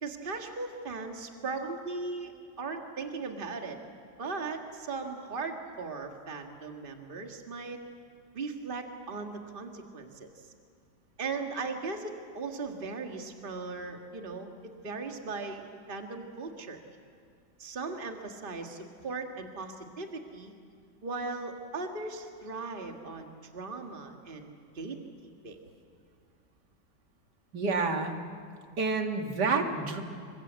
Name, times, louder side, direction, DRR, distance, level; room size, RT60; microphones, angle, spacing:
voice 1, 0.0-2.3 2.6-3.8 4.2-7.8 8.3-10.3 11.2-14.5 14.8-15.6 15.9-16.8 17.6-20.5 21.0-25.0 25.2-25.6, right 4 dB, 30° right, 4 dB, 1.9 m, -38 dB
voice 2, 27.5-28.2 28.8-30.0, right 4 dB, 65° right, 4 dB, 2.6 m, -28 dB
27.0 x 24.0 x 8.1 m, 2.3 s
omnidirectional pair, 1.9 m